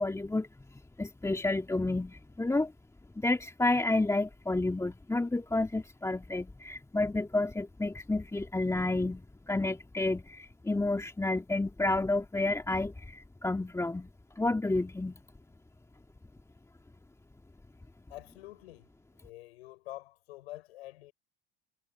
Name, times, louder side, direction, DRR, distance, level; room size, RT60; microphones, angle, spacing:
voice 1, 0.0-2.7 3.2-14.1 14.4-15.1, left 2 dB, 10° left, 2.4 m, -30 dB
voice 2, 18.1-18.9 19.2-21.1, left 17 dB, 70° left, 6.2 m, -47 dB
hypercardioid pair, 70°, 32 cm